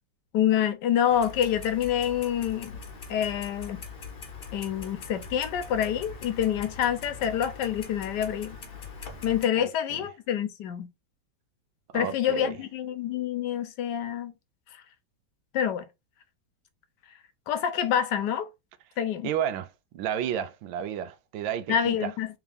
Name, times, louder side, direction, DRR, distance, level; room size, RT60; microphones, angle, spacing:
voice 1, 0.3-2.7 3.1-3.8 4.5-8.6 9.2-10.9 11.9-14.3 15.5-15.8 17.5-18.5 19.0-19.3 21.7-22.3, left 9 dB, 75° left, 1.2 m, -27 dB
Clock, 1.1-9.5, left 5 dB, 45° left, 0.8 m, -42 dB
voice 2, 9.6-10.0 11.9-12.6 19.2-22.1, right 9 dB, 85° right, 1.3 m, -32 dB
3.5 x 3.4 x 3.3 m
omnidirectional pair, 2.1 m